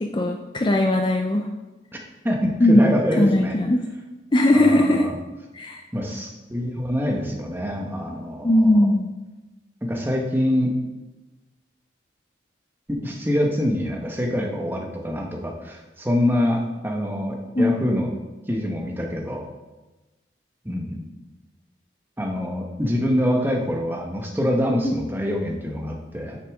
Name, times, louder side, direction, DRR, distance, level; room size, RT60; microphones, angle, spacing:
voice 1, 0.0-1.5 2.6-2.8 3.2-3.8 4.3-5.0 5.5-5.8 8.4-9.1 17.6-17.9 24.8-24.9, left 1 dB, 25° left, 3 dB, 0.4 m, -19 dB
voice 2, 1.9-3.6 4.5-5.2 5.9-8.9 9.8-10.7 12.9-18.1 18.5-19.4 20.6-21.0 22.2-26.4, equal, 10° right, 1 dB, 1.0 m, -25 dB
9.4 x 6.6 x 3.6 m, 1.1 s
head